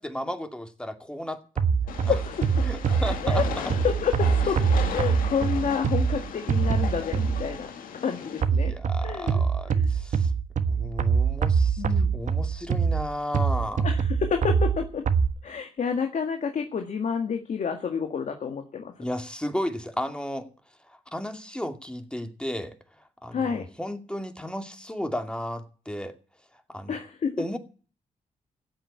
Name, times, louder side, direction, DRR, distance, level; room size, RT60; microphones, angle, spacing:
voice 1, 0.0-1.6 2.0-2.1 2.6-3.4 8.6-10.3 10.7-11.8 12.1-13.9 19.0-20.5 20.9-22.7 23.2-26.1 26.7-27.0 27.4-27.6, left 1 dB, 5° left, 2.4 m, -34 dB
sound 1, 1.6-7.6 8.4-15.3, right 6 dB, 60° right, 1.4 m, -24 dB
Train, 1.9-8.4, left 7 dB, 85° left, 1.7 m, -36 dB
voice 2, 2.0-2.7 3.2-3.4 3.8-4.6 4.9-7.7 8.0-8.7 9.0-9.4 9.7-9.9 11.8-12.1 13.8-15.1 15.4-18.9 23.3-23.7 26.9-27.4, left 6 dB, 60° left, 1.8 m, -29 dB
14.5 x 8.4 x 8.6 m
cardioid pair, 75°, 14 cm